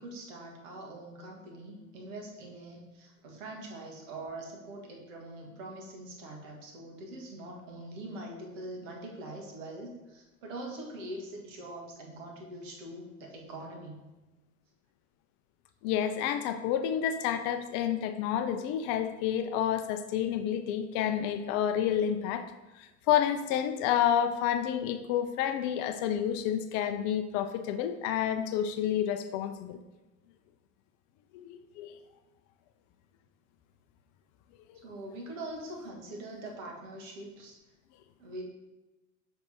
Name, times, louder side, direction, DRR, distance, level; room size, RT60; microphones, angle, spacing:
voice 1, 0.0-14.0 34.7-37.6 38.2-38.4, right 1 dB, 65° right, 1 dB, 1.6 m, -43 dB
voice 2, 15.8-22.5 22.8-29.8 31.3-31.9, left 9 dB, 45° left, 9 dB, 0.5 m, -29 dB
6.6 x 3.5 x 4.1 m, 1.1 s
hypercardioid pair, 85°, 42 cm